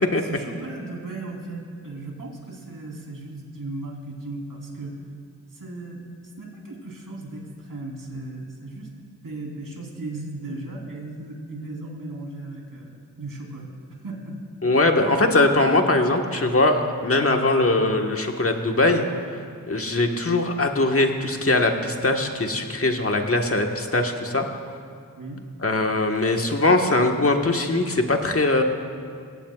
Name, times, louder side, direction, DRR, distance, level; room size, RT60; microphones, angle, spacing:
voice 1, 0.2-5.0 5.5-6.0 6.4-8.9 9.2-14.4 25.2-25.4, right 2 dB, 70° right, -1 dB, 3.7 m, -36 dB
voice 2, 14.6-19.1 19.7-24.5 25.6-28.6, left 2 dB, 40° left, 3 dB, 1.6 m, -21 dB
22.5 x 17.0 x 2.5 m, 2.3 s
cardioid pair, 50°, 34 cm